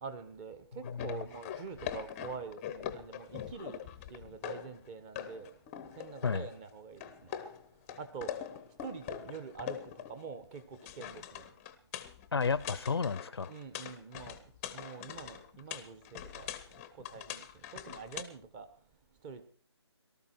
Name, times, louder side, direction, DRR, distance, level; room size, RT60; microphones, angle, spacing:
voice 1, 0.0-3.8 4.1-5.5 6.0-7.3 8.0-8.3 8.8-11.5 13.5-14.4 14.7-16.5 17.1-17.5 17.7-18.7 19.2-19.4, right 5 dB, 20° right, 1.3 m, -45 dB
sound 1, 0.8-4.9 5.1-6.7 7.0-10.3 10.5-18.2, left 10 dB, 15° left, 0.8 m, -43 dB
voice 2, 12.3-13.5, left 5 dB, 60° left, 0.7 m, -32 dB
18.5 x 13.0 x 4.6 m
figure-of-eight pair, 150°, 15 cm